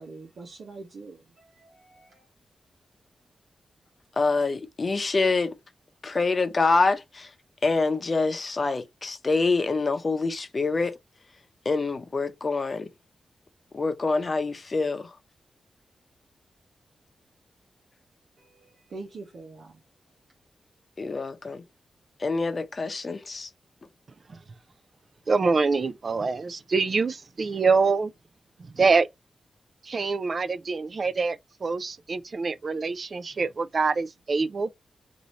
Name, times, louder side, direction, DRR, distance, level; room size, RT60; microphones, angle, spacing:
voice 1, 0.0-2.3 18.4-19.8, right 3 dB, 80° right, 1.0 m, -44 dB
voice 2, 4.2-5.5 6.0-7.3 7.6-10.9 11.6-12.9 13.7-15.1 21.0-21.6 22.2-23.5, left 3 dB, 40° left, 0.7 m, -26 dB
voice 3, 25.3-28.1 28.7-29.1 29.8-34.7, right 4 dB, 50° right, 0.4 m, -25 dB
3.0 x 2.7 x 3.9 m
cardioid pair, 80°, 0 cm